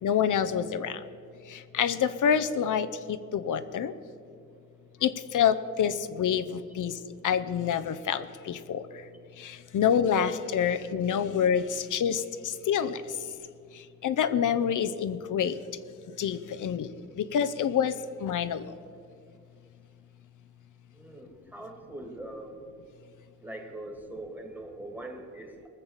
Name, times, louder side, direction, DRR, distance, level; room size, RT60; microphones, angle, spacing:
voice 1, 0.0-1.0 1.5-3.9 5.0-7.0 7.2-8.8 9.4-13.0 14.0-15.6 16.2-16.9 17.2-18.7, left 8 dB, 85° left, 11 dB, 0.7 m, -27 dB
voice 2, 20.9-22.6 23.4-25.7, right 1 dB, 5° right, 3 dB, 2.1 m, -42 dB
20.0 x 6.8 x 7.2 m, 2.3 s
cardioid pair, 90°, 30 cm